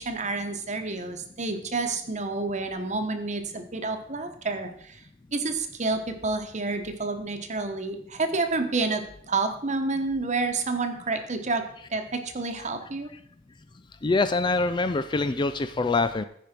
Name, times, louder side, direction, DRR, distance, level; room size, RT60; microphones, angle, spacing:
voice 1, 0.0-5.0 5.3-11.6 11.9-13.1, right 3 dB, 35° right, 6 dB, 1.1 m, -29 dB
voice 2, 14.0-16.2, left 3 dB, 25° left, 11 dB, 0.3 m, -24 dB
15.0 x 5.1 x 4.4 m, 0.69 s
head